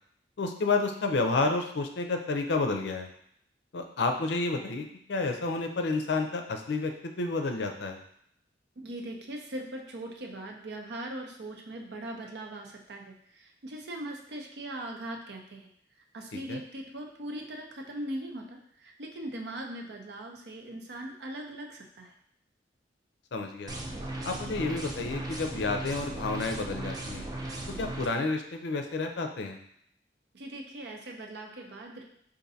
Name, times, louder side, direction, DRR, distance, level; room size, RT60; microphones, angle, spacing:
voice 1, 0.4-3.1 3.7-8.0 16.5-16.6 23.3-23.7 24.2-27.2 27.8-29.6, left 3 dB, 70° left, 5 dB, 0.5 m, -30 dB
voice 2, 8.8-15.7 16.1-22.1 30.3-32.0, right 1 dB, 65° right, 2 dB, 0.6 m, -40 dB
sound 1, 23.7-28.1, right 1 dB, 20° right, 0.5 m, -37 dB
5.0 x 2.6 x 2.7 m, 0.70 s
head